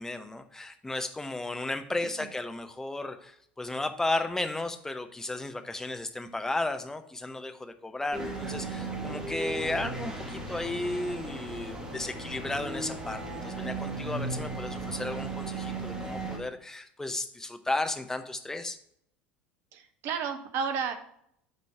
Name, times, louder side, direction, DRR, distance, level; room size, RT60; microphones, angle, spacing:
voice 1, 0.0-18.8, left 2 dB, 10° left, 7 dB, 0.8 m, -34 dB
sound 1, 8.1-16.4, right 2 dB, 15° right, 2.1 m, -36 dB
voice 2, 19.7-20.9, right 6 dB, 50° right, 8 dB, 1.1 m, -32 dB
8.3 x 4.3 x 4.3 m, 0.69 s
figure-of-eight pair, 70°, 5 cm